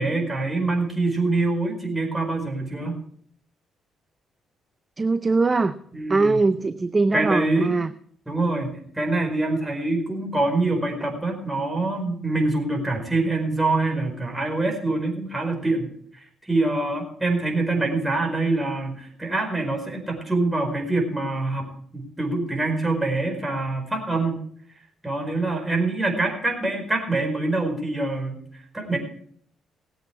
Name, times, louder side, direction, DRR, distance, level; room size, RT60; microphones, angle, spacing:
voice 1, 0.0-3.0 5.9-6.4 7.1-7.7 8.3-15.9 16.4-24.4 25.0-28.4 28.7-29.0, right 2 dB, 10° right, 2 dB, 4.8 m, -25 dB
voice 2, 5.0-5.8 6.1-7.9, right 3 dB, 25° right, 11 dB, 0.6 m, -21 dB
19.0 x 8.1 x 4.7 m, 0.63 s
cardioid pair, 90°, 0 cm